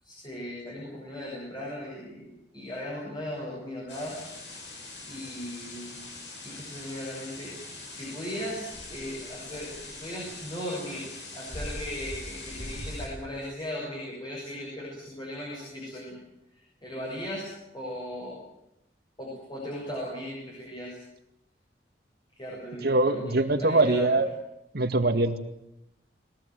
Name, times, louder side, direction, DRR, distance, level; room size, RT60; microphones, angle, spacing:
voice 1, 0.0-4.2 5.1-6.0 6.4-16.2 16.5-18.4 19.2-21.0 22.3-24.1, equal, 25° left, -3 dB, 6.9 m, -38 dB
sound 1, 3.9-13.1, left 2 dB, 80° left, 7.4 m, -41 dB
voice 2, 22.8-24.3 24.7-25.4, right 2 dB, 65° right, 6 dB, 2.1 m, -23 dB
21.5 x 18.0 x 9.3 m, 0.85 s
head